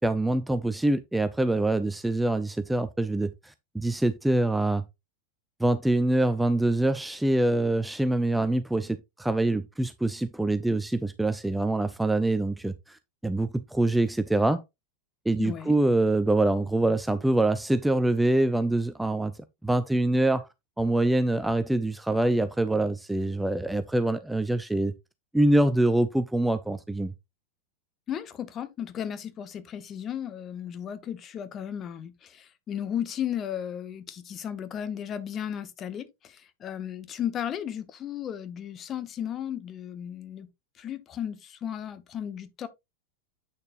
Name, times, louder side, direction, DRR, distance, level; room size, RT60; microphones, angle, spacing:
voice 1, 0.0-4.8 5.6-14.6 15.3-19.3 19.6-20.5 20.8-24.9 25.3-27.1, right 1 dB, 5° right, 0.5 m, -25 dB
voice 2, 15.4-15.8 28.1-40.5 40.8-42.7, left 9 dB, 30° left, 1.0 m, -35 dB
8.8 x 6.5 x 2.5 m
figure-of-eight pair, 90°, 0 cm